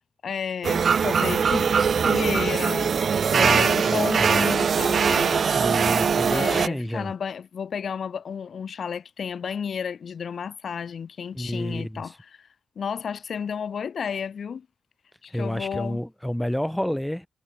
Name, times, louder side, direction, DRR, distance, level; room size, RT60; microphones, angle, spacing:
voice 1, 0.2-3.0 3.4-5.5 6.3-12.5 12.8-14.7 15.2-16.0, left 7 dB, 65° left, 0.9 m, -32 dB
sound 1, 0.6-6.7, right 6 dB, 60° right, 0.3 m, -21 dB
voice 2, 3.3-4.5 5.5-7.1 11.3-12.2 15.3-17.3, equal, 5° left, 4.1 m, -30 dB
wide cardioid pair, 145°, 0 cm